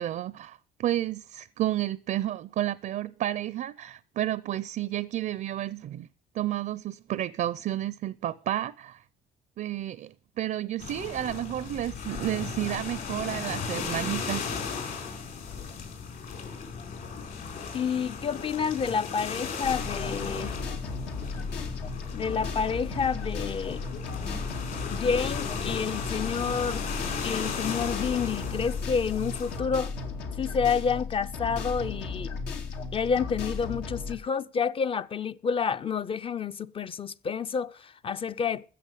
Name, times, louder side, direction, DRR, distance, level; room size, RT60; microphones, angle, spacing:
voice 1, 0.0-6.1 6.3-9.0 9.6-14.4, right 13 dB, 55° right, 0.5 m, -31 dB
sound 1, 10.8-29.6, left 5 dB, 60° left, 5.0 m, -36 dB
voice 2, 17.7-20.5 22.1-23.8 24.9-26.8 27.2-29.9 30.4-32.3 32.9-38.7, left 6 dB, 30° left, 0.5 m, -29 dB
sound 2, 19.6-34.1, left 4 dB, 85° left, 2.3 m, -35 dB
14.5 x 7.2 x 8.2 m
cardioid pair, 110°, 17 cm